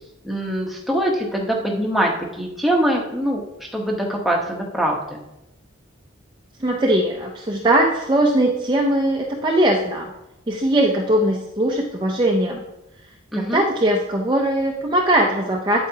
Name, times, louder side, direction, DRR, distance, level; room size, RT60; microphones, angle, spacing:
voice 1, 0.2-5.2 13.3-13.7, right 1 dB, ahead, -1 dB, 1.0 m, -23 dB
voice 2, 6.6-10.1 10.5-12.6 13.4-15.9, right 1 dB, 20° right, 0 dB, 0.6 m, -20 dB
8.9 x 8.3 x 2.8 m, 0.91 s
head